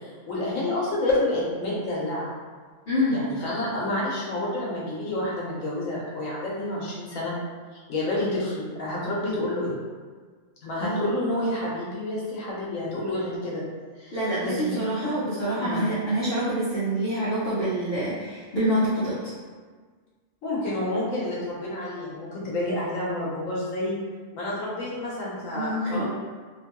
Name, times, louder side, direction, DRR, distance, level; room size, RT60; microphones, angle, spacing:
voice 1, 0.0-2.3 3.1-7.3 7.7-9.8 10.6-13.6 14.0-14.2 14.4-15.2 15.6-15.9 20.4-24.0 24.3-26.0, left 1 dB, 75° left, -6 dB, 1.2 m, -29 dB
voice 2, 2.9-3.2 10.8-11.1 14.1-19.3 25.5-26.0, equal, 55° left, -11 dB, 0.9 m, -26 dB
3.0 x 2.2 x 2.8 m, 1.5 s
omnidirectional pair, 1.4 m